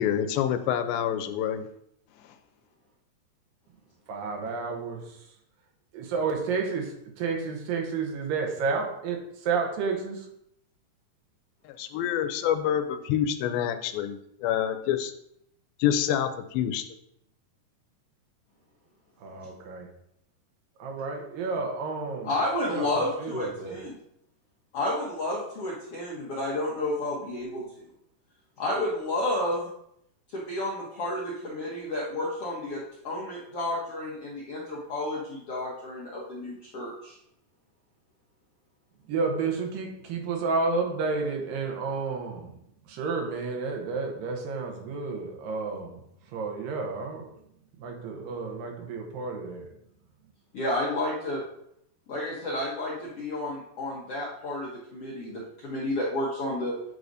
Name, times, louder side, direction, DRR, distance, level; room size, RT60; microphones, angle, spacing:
voice 1, 0.0-1.6 11.8-15.1 15.8-16.9, left 10 dB, 90° left, 9 dB, 2.4 m, -27 dB
voice 2, 4.1-5.2 5.9-10.3 19.2-19.9 20.8-22.3 22.7-23.8 39.1-42.5 42.9-46.0 46.3-47.3 47.8-49.7, right 4 dB, 75° right, 2 dB, 2.7 m, -31 dB
voice 3, 22.2-24.0 24.7-27.6 28.6-29.7 30.3-37.2 50.5-51.4 52.1-56.7, left 1 dB, 70° left, -5 dB, 1.3 m, -31 dB
9.2 x 4.8 x 2.6 m, 0.75 s
omnidirectional pair, 4.1 m